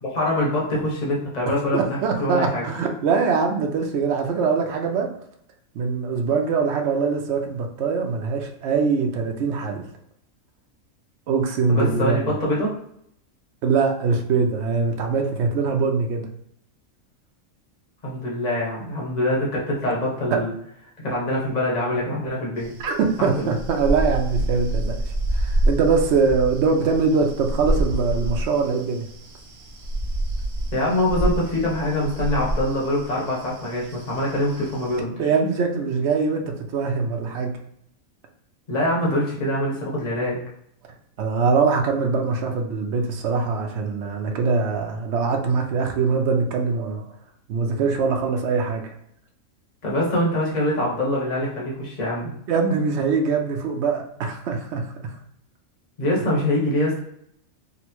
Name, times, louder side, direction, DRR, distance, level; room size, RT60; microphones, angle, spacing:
voice 1, 0.0-2.6 11.7-12.7 18.0-20.5 21.0-22.7 23.2-23.6 30.7-35.1 38.7-40.4 49.8-52.3 56.0-57.0, left 1 dB, 35° left, -4 dB, 1.0 m, -24 dB
voice 2, 1.7-5.1 5.7-9.9 11.3-12.2 13.6-16.3 20.3-20.4 22.8-25.0 25.3-29.0 35.2-37.6 41.2-47.0 47.5-48.8 52.5-55.1, right 5 dB, 65° right, 3 dB, 0.7 m, -23 dB
sound 1, 22.6-35.0, right 1 dB, 25° right, 1.1 m, -28 dB
4.0 x 2.0 x 2.9 m, 0.70 s
omnidirectional pair, 1.4 m